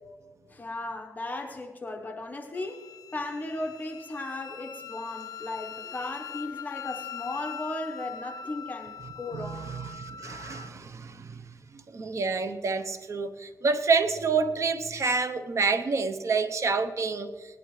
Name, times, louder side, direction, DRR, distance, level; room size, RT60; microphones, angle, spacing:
voice 1, 0.5-9.7, left 2 dB, 30° left, 1.1 m, -36 dB
Wind instrument woodwind instrument, 2.5-10.7, left 7 dB, 80° left, 0.4 m, -42 dB
voice 2, 9.9-11.6 11.9-17.3, right 4 dB, 55° right, 0.8 m, -28 dB
19.0 x 11.0 x 3.2 m
cardioid pair, 95°, 6 cm